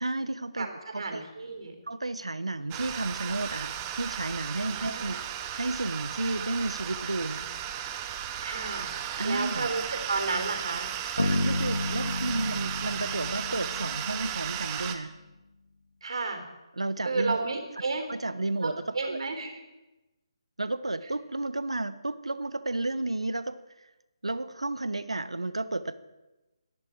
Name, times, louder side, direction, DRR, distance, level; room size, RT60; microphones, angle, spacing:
voice 1, 0.0-1.2 1.9-5.2 5.5-7.5 9.2-9.7 11.2-15.1 16.8-17.4 18.1-19.2 20.6-23.6 24.2-25.9, right 2 dB, 90° right, 14 dB, 1.1 m, -32 dB
voice 2, 0.9-1.7 4.6-5.2 8.4-8.9 9.2-10.9 16.0-16.4 17.0-18.1 18.6-19.6, right 3 dB, 65° right, 4 dB, 4.0 m, -32 dB
sound 1, 2.7-15.0, right 10 dB, 20° right, 1.1 m, -35 dB
Bass guitar, 11.2-15.0, left 2 dB, 80° left, 2.0 m, -32 dB
27.0 x 11.0 x 4.7 m, 1.1 s
figure-of-eight pair, 150°, 3 cm